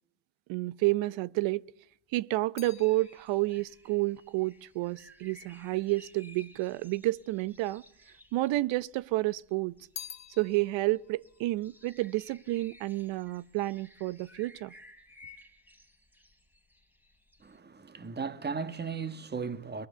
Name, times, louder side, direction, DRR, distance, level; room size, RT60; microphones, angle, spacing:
voice 1, 0.5-1.6 2.1-7.8 8.3-9.8 10.4-14.7, right 19 dB, 65° right, 0.8 m, -30 dB
sound 1, 1.6-6.0 6.8-7.6 7.9-9.0 9.4-12.9 13.2-13.7, left 9 dB, 35° left, 1.0 m, -50 dB
sound 2, 2.6-17.6, left 2 dB, 5° right, 3.2 m, -58 dB
voice 2, 17.4-19.9, right 5 dB, 20° right, 1.7 m, -36 dB
22.0 x 20.0 x 6.9 m
supercardioid pair, 90°, 50 cm